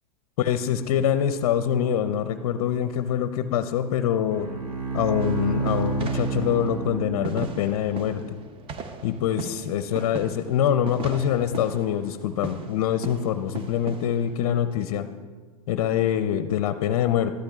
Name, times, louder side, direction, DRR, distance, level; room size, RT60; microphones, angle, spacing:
voice 1, 0.4-4.5 4.9-8.4 9.0-15.1 15.7-17.3, left 10 dB, 60° left, 10 dB, 0.5 m, -25 dB
Bowed string instrument, 4.3-7.8, right 4 dB, 85° right, 1.6 m, -29 dB
sound 1, 5.2-14.8, right 4 dB, 30° right, 0.7 m, -38 dB
13.0 x 11.5 x 2.4 m, 1.4 s
hypercardioid pair, 120°, 19 cm